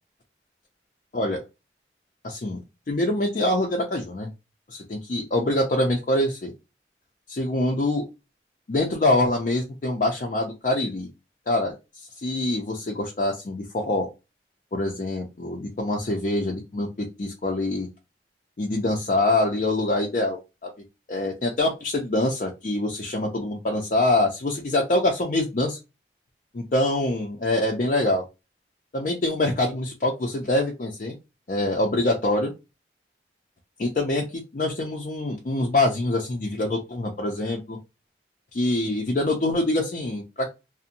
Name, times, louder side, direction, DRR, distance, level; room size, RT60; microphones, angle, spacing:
voice 1, 2.2-2.6 2.9-4.3 4.7-6.5 7.3-8.0 8.7-11.1 11.5-11.7 12.2-14.1 14.7-17.9 18.6-20.7 21.1-25.8 26.5-28.2 28.9-31.2 31.5-32.5 33.8-37.8 38.5-40.5, left 1 dB, 45° left, 0 dB, 0.4 m, -25 dB
2.5 x 2.1 x 2.6 m, 0.25 s
head